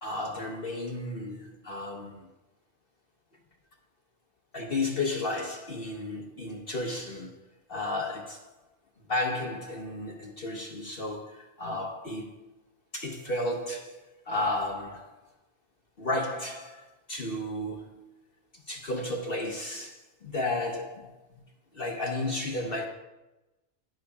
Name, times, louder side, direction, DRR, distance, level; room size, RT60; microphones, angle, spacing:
voice 1, 0.0-2.3 4.5-7.4 7.7-8.4 9.1-12.4 12.9-14.0 14.2-15.1 16.0-18.1 18.7-21.4 21.7-22.9, left 2 dB, 45° left, 1 dB, 1.1 m, -33 dB
12.0 x 10.5 x 2.3 m, 1.0 s
omnidirectional pair, 1.5 m